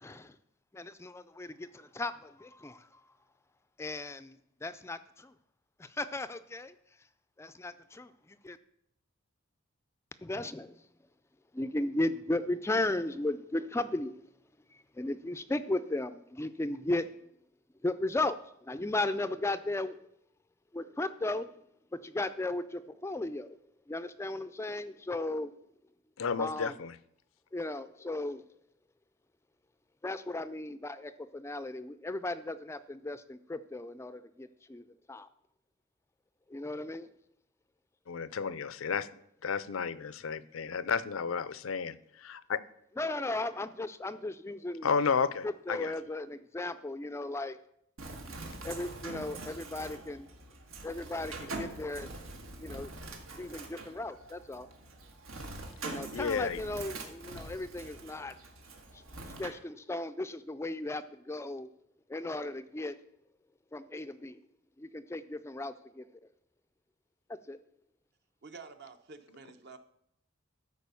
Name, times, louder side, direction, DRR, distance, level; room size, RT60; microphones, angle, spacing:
voice 1, 0.0-0.4 0.7-3.1 3.8-5.3 5.8-6.7 7.4-8.6 10.2-10.8 11.5-14.3 14.7-17.2 17.8-20.0 20.7-21.5 21.9-23.6 23.9-25.5 26.4-26.7 27.5-28.5 30.0-35.3 36.5-37.1 43.0-44.9 45.4-47.6 48.6-50.3 50.8-52.2 52.6-52.9 53.4-54.7 55.8-58.3 58.9-61.7 62.1-63.0 63.7-64.4 64.8-66.1 67.3-67.6, left 2 dB, 15° left, 12 dB, 0.3 m, -36 dB
voice 2, 26.2-26.9 38.1-39.1 39.4-42.6 44.8-45.9 56.1-56.6, left 5 dB, 75° left, 17 dB, 0.5 m, -32 dB
Bird, 48.0-59.5, right 2 dB, 85° right, 1.6 m, -44 dB
voice 3, 68.4-69.8, right 4 dB, 55° right, 8 dB, 0.8 m, -49 dB
12.5 x 4.8 x 6.9 m, 0.73 s
head